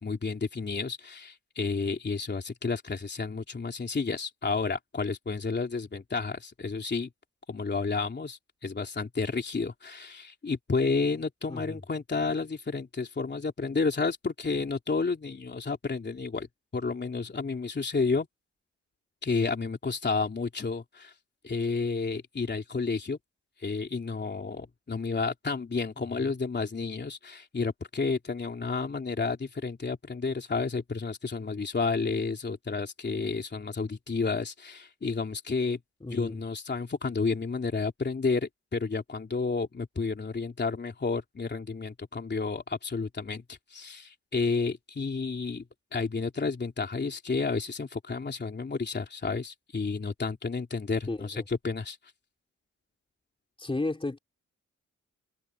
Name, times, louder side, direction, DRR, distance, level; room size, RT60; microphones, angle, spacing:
voice 1, 0.0-7.1 7.5-16.5 16.7-18.3 19.2-21.1 21.4-23.2 23.6-35.8 36.1-45.6 45.9-52.0, left 4 dB, 35° left, 3.3 m, -31 dB
voice 2, 11.5-11.8 26.0-26.4 36.0-36.4 51.1-51.4 53.6-54.2, left 2 dB, 20° left, 3.0 m, -34 dB
cardioid pair, 95°, 30 cm